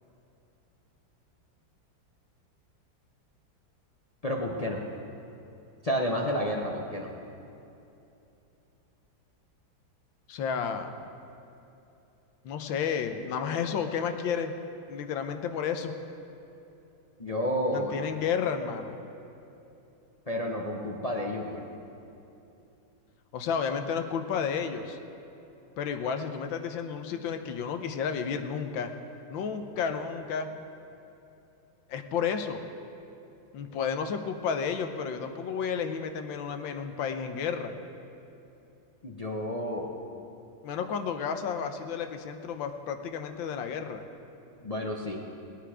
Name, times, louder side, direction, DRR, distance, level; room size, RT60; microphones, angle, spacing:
voice 1, 4.2-4.8 5.8-7.1 17.2-18.0 20.3-21.6 39.0-40.0 44.6-45.2, equal, 40° left, 0 dB, 0.5 m, -30 dB
voice 2, 10.3-11.0 12.4-14.5 14.9-15.9 17.7-19.0 23.3-25.0 25.8-28.9 29.3-30.5 31.9-32.6 33.5-37.7 40.6-44.0, left 6 dB, 80° left, 7 dB, 1.5 m, -31 dB
20.0 x 9.2 x 4.9 m, 2.9 s
omnidirectional pair, 2.1 m